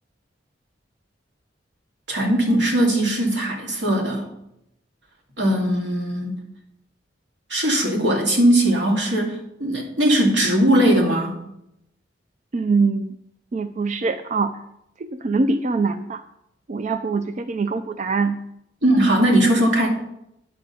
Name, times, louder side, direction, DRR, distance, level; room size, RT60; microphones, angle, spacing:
voice 1, 2.1-4.3 5.4-6.4 7.5-11.4 18.8-19.9, right 1 dB, 80° right, 0 dB, 2.5 m, -19 dB
voice 2, 12.5-13.1 13.5-14.5 15.0-16.2 16.7-18.4, right 4 dB, 40° right, 9 dB, 0.4 m, -23 dB
9.8 x 5.0 x 6.9 m, 0.81 s
head